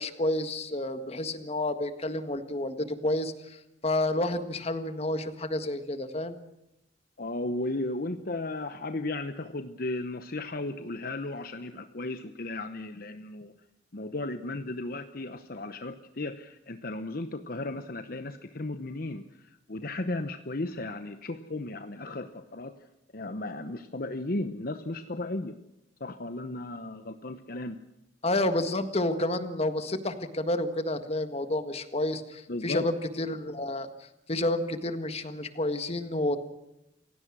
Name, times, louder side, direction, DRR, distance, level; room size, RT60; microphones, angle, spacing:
voice 1, 0.0-3.6 3.8-6.4 28.2-33.9 34.3-36.4, left 1 dB, 35° left, 9 dB, 1.7 m, -30 dB
voice 2, 7.2-13.5 13.9-22.7 23.1-25.6 26.0-27.8 32.5-32.9, left 2 dB, 55° left, 9 dB, 1.0 m, -35 dB
28.0 x 17.0 x 6.2 m, 0.86 s
head